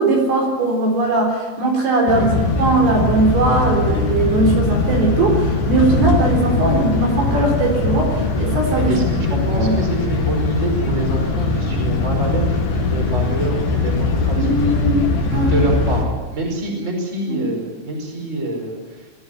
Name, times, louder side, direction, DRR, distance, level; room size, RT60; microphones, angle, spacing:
voice 1, 0.0-8.9 9.3-9.8 14.4-15.6 17.3-17.5, right 2 dB, 55° right, 0 dB, 5.6 m, -19 dB
sound 1, 2.1-16.0, left 3 dB, 55° left, 4.2 m, -20 dB
voice 2, 8.9-9.2 9.5-14.4 15.5-18.8, right 1 dB, 15° right, 1 dB, 4.8 m, -26 dB
22.0 x 14.5 x 10.0 m, 1.3 s
omnidirectional pair, 5.5 m